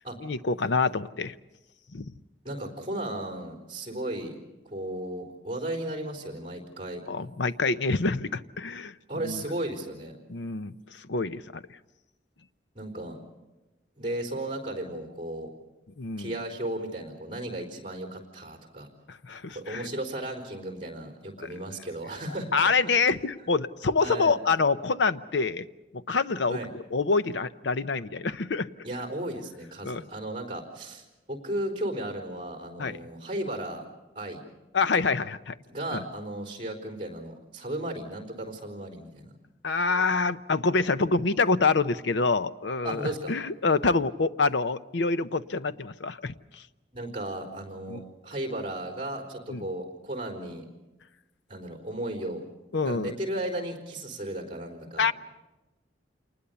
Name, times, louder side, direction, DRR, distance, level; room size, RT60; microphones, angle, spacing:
voice 1, 0.2-1.3 1.9-2.1 7.1-8.9 9.2-9.4 10.3-11.6 16.0-16.3 19.1-19.9 21.4-21.5 22.5-25.7 25.9-28.7 29.8-30.0 32.8-33.0 34.7-35.5 35.9-36.0 39.6-46.6 47.9-48.0 49.5-49.6 52.7-53.1 55.0-55.1, left 4 dB, 70° left, 14 dB, 0.7 m, -26 dB
voice 2, 2.4-4.4 4.6-7.0 9.1-10.2 12.7-13.2 14.0-15.5 16.2-18.9 19.5-22.7 24.0-24.3 26.5-26.7 28.8-33.9 34.2-34.4 35.7-39.3 42.8-43.3 46.9-50.7 51.5-52.4 52.8-55.1, right 1 dB, 30° right, 3 dB, 4.1 m, -35 dB
28.0 x 20.0 x 6.9 m, 1.1 s
head